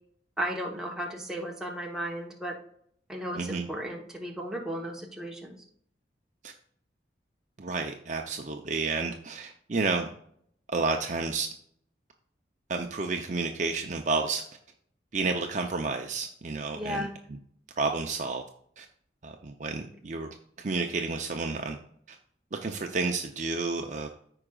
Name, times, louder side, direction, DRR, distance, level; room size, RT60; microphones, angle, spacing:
voice 1, 0.4-2.5 3.1-5.6 16.8-17.1, equal, 5° right, -1 dB, 1.0 m, -35 dB
voice 2, 3.3-3.7 6.4-6.5 7.6-10.1 10.7-11.5 12.7-14.4 15.1-17.4 17.8-18.4 18.8-18.9 19.2-20.3 20.6-21.8 22.1-22.2 22.5-24.2, right 3 dB, 40° right, 4 dB, 0.6 m, -31 dB
14.0 x 4.9 x 2.3 m, 0.64 s
head